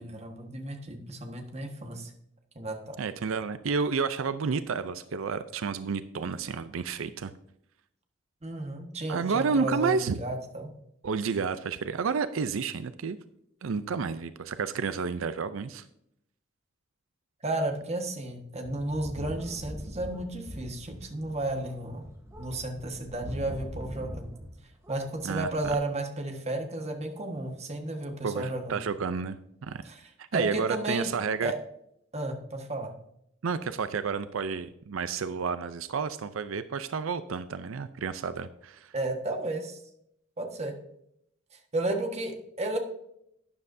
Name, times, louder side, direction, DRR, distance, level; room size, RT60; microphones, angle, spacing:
voice 1, 0.0-2.1 2.5-3.0 8.4-10.7 17.4-22.0 22.4-24.3 24.9-28.8 29.8-30.0 30.3-31.1 31.4-31.5 32.1-32.9 38.9-39.8 40.4-40.7 41.7-42.8, right 2 dB, 35° right, 4 dB, 1.4 m, -33 dB
voice 2, 3.0-7.3 9.1-10.2 11.0-13.2 13.6-15.9 25.2-25.8 28.2-29.8 30.2-31.5 33.4-38.9, right 5 dB, 90° right, 12 dB, 0.5 m, -31 dB
sound 1, 18.6-24.6 24.8-25.7, equal, 15° right, 2.1 m, -42 dB
12.0 x 9.7 x 2.6 m, 0.75 s
head